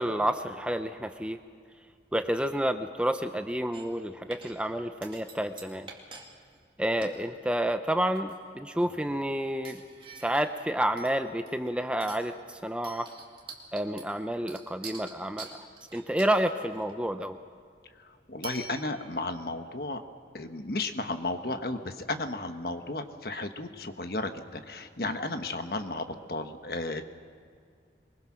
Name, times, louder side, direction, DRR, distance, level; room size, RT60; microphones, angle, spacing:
voice 1, 0.0-1.4 2.1-5.9 6.8-9.8 10.2-13.1 13.7-15.7 15.9-17.4, right 1 dB, 5° right, 8 dB, 0.6 m, -29 dB
sound 1, 3.7-4.0 4.3-4.7 5.0-6.3 6.5-6.6 7.0-7.2 7.9-8.5 8.8-9.1 9.6-10.6 11.0-11.7 12.0-12.3 12.8-16.9 18.4-19.3, right 4 dB, 30° right, 2.4 m, -46 dB
voice 2, 18.0-20.0 20.3-27.0, left 2 dB, 55° left, 7 dB, 1.3 m, -34 dB
23.5 x 21.5 x 6.2 m, 2.2 s
head